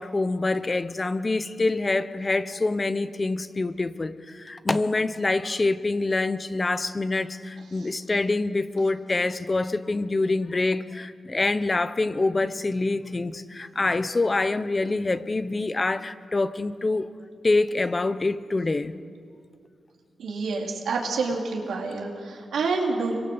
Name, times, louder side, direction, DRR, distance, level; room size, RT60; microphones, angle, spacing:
voice 1, 0.0-17.1 17.4-19.0, left 3 dB, 25° left, 1.0 m, -26 dB
voice 2, 20.2-23.2, right 4 dB, 90° right, 4.1 m, -28 dB
26.0 x 24.0 x 8.1 m
wide cardioid pair, 110°, 0 cm